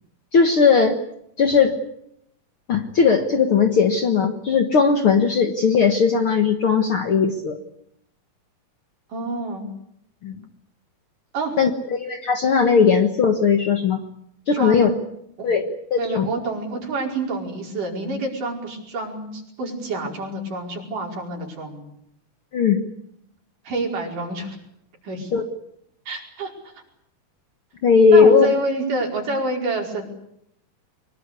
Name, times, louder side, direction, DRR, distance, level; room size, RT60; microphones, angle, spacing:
voice 1, 0.3-1.0 1.4-1.8 2.7-7.6 10.2-10.4 11.6-14.0 14.5-14.9 15.4-16.3 22.5-22.8 25.3-25.4 27.8-28.5, left 5 dB, 50° left, 6 dB, 1.8 m, -18 dB
voice 2, 9.1-9.7 11.3-11.6 14.5-15.0 15.4-15.5 16.0-21.8 23.6-24.6 25.0-25.3 26.1-26.5 28.1-30.0, right 2 dB, 65° right, 1 dB, 6.5 m, -28 dB
24.0 x 22.0 x 8.3 m, 0.75 s
omnidirectional pair, 4.0 m